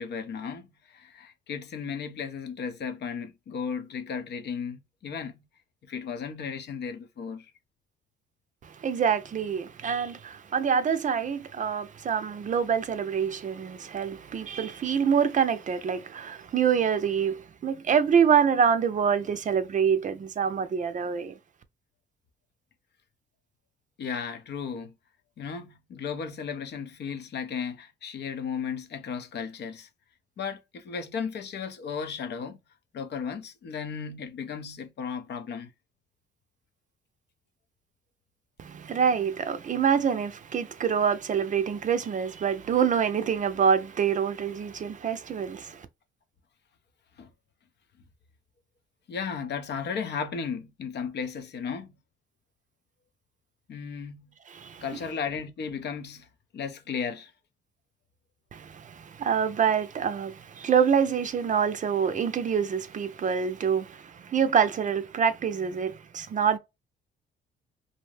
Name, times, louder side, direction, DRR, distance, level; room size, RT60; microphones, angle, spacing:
voice 1, 0.0-5.4 5.8-7.5 24.0-24.9 25.4-29.9 30.4-32.6 32.9-35.7 47.2-47.3 49.1-51.9 53.7-54.3 54.8-56.3 56.5-57.3, left 6 dB, 60° left, 0.6 m, -35 dB
voice 2, 8.6-21.4 38.6-45.9 54.5-54.8 58.5-66.6, right 7 dB, 40° right, 0.4 m, -26 dB
2.6 x 2.0 x 3.1 m
cardioid pair, 90°, 20 cm